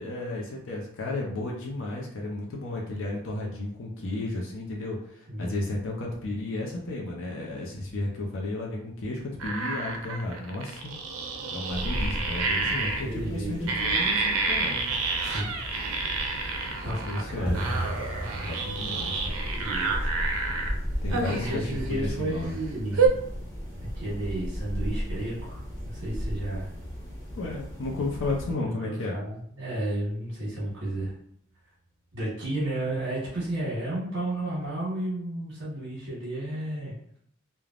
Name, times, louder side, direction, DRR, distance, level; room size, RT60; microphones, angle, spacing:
voice 1, 0.0-10.9 11.5-14.8 16.8-17.6 18.5-19.3 21.0-22.6 27.3-29.1, left 2 dB, 65° left, -1 dB, 0.5 m, -33 dB
sound 1, 9.4-13.1 13.7-17.2 17.5-20.7 21.1-21.9 22.4-22.5 22.9-23.1, right 4 dB, 85° right, 0.5 m, -29 dB
sound 2, 11.7-28.5, equal, 15° left, 1.0 m, -36 dB
voice 2, 12.7-13.7 15.2-15.8 16.8-19.0 19.2-20.1 21.1-23.2 23.9-26.7 28.7-31.1 32.1-36.9, right 1 dB, 60° right, -8 dB, 1.2 m, -33 dB
sound 3, 17.4-28.2 28.4-29.1 29.4-29.7 29.9-30.3 30.6-30.7 31.2-31.8 32.1-32.2 32.7-32.8, right 1 dB, 5° right, 0.5 m, -41 dB
3.3 x 2.1 x 2.4 m, 0.66 s
head